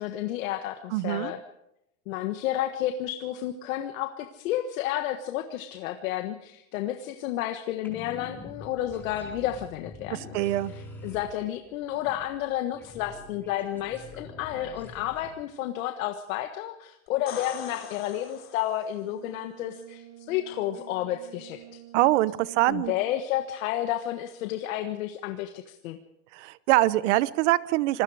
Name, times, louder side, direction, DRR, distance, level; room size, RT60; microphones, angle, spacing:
voice 1, 0.0-1.4 2.1-10.4 10.7-21.6 22.6-26.0, left 12 dB, 65° left, 6 dB, 1.5 m, -31 dB
voice 2, 0.9-1.3 10.3-10.7 21.9-22.9 26.3-28.0, right 17 dB, 55° right, 18 dB, 1.0 m, -23 dB
sound 1, 7.8-15.3, left 2 dB, 5° left, 4.4 m, -45 dB
sound 2, 17.1-19.0 22.7-22.8, left 7 dB, 30° left, 3.7 m, -42 dB
Brass instrument, 19.0-23.3, right 14 dB, 70° right, 3.0 m, -49 dB
26.5 x 20.5 x 4.9 m, 0.84 s
supercardioid pair, 160°, 43 cm